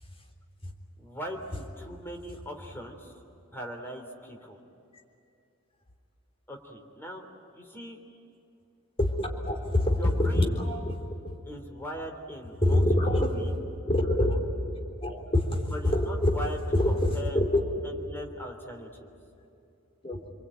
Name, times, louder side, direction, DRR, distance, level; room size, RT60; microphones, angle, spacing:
voice 1, 1.0-3.1 3.5-4.6 6.5-7.3 7.5-8.0 10.0-10.6 11.4-13.5 15.7-16.6 16.8-17.4 17.8-19.1, equal, 10° left, 2 dB, 3.4 m, -40 dB
voice 2, 9.0-10.8 12.6-13.3 13.9-14.4 14.6-14.7 15.0-16.3 16.7-17.6 20.0-20.2, left 1 dB, 25° left, 1 dB, 3.8 m, -25 dB
28.5 x 23.0 x 9.0 m, 2.6 s
head